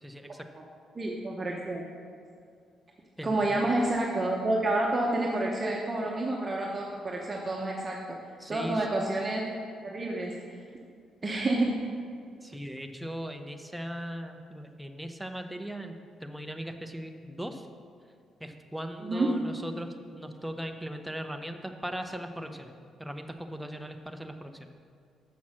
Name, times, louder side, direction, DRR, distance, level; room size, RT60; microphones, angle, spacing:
voice 1, 0.0-0.5 3.2-3.5 8.4-8.8 12.4-15.9 16.2-17.7 18.4-22.7 23.0-24.5, equal, 5° right, 5 dB, 0.7 m, -38 dB
voice 2, 1.0-1.8 3.2-8.0 8.5-9.5 9.8-10.3 11.2-11.8 19.0-19.3, right 2 dB, 30° right, -2 dB, 1.0 m, -29 dB
7.3 x 6.2 x 6.1 m, 2.3 s
cardioid pair, 90°, 0 cm